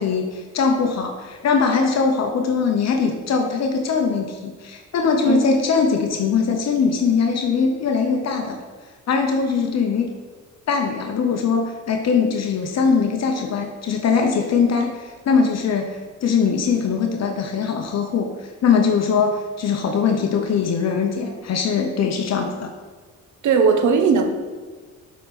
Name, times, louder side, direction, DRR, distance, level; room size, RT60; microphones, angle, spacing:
voice 1, 0.0-8.6 9.1-10.1 10.7-22.7, left 5 dB, 60° left, 3 dB, 0.9 m, -21 dB
voice 2, 23.4-24.3, right 5 dB, 75° right, 6 dB, 1.0 m, -17 dB
7.4 x 5.1 x 4.2 m, 1.4 s
cardioid pair, 90°, 30 cm